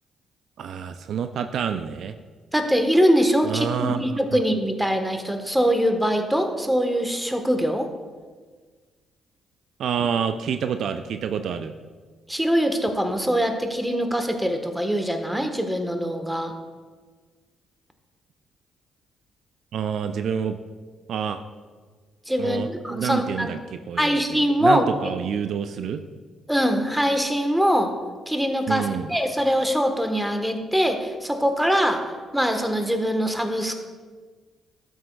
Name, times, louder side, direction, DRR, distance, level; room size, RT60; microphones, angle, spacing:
voice 1, 0.6-2.1 3.4-4.2 9.8-11.7 19.7-20.6 21.1-21.4 22.4-26.0 28.7-29.1, right 7 dB, 65° right, 9 dB, 0.3 m, -28 dB
voice 2, 2.5-7.9 12.3-16.5 22.3-23.5 24.0-24.9 26.5-27.9 28.3-32.0 32.3-33.8, equal, 5° right, 6 dB, 1.2 m, -23 dB
12.5 x 6.3 x 2.3 m, 1.5 s
hypercardioid pair, 45°, 0 cm